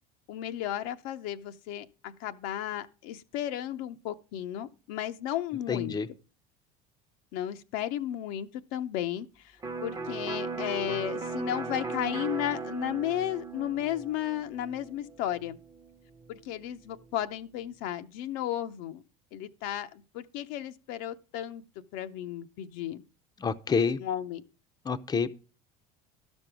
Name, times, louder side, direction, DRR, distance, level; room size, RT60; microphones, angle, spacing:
voice 1, 0.3-5.9 7.3-15.6 16.3-19.0 19.3-21.6 21.9-23.0 24.0-24.4, left 11 dB, 75° left, 0.7 m, -34 dB
voice 2, 5.7-6.1 23.4-24.0 24.9-25.3, left 5 dB, 20° left, 0.6 m, -28 dB
Electric guitar, 9.6-17.3, right 4 dB, 20° right, 0.8 m, -38 dB
12.5 x 5.3 x 6.0 m
supercardioid pair, 95°, 19 cm